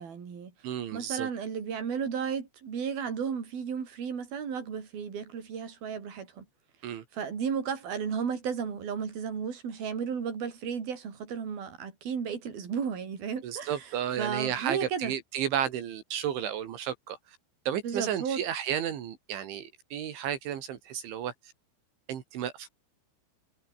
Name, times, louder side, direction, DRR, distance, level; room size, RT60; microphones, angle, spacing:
voice 1, 0.0-0.5 0.9-6.4 7.1-13.9 14.2-15.1 17.8-18.4, right 6 dB, 55° right, 6.2 m, -34 dB
voice 2, 0.6-1.3 6.8-7.0 13.4-17.4 17.7-21.3 22.1-22.7, right 10 dB, 80° right, 4.9 m, -33 dB
omnidirectional pair, 5.3 m